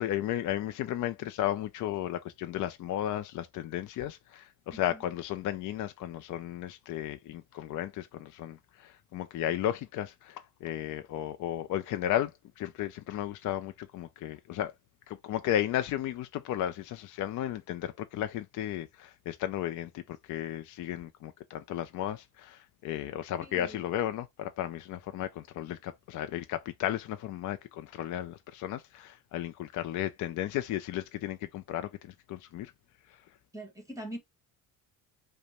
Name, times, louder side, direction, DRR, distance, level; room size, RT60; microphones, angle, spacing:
voice 1, 0.0-14.7 15.1-32.7 33.1-33.2, left 12 dB, 55° left, 0.5 m, -34 dB
voice 2, 23.4-23.8 33.5-34.2, right 1 dB, 10° right, 1.5 m, -42 dB
5.0 x 2.2 x 2.8 m
cardioid pair, 125°, 37 cm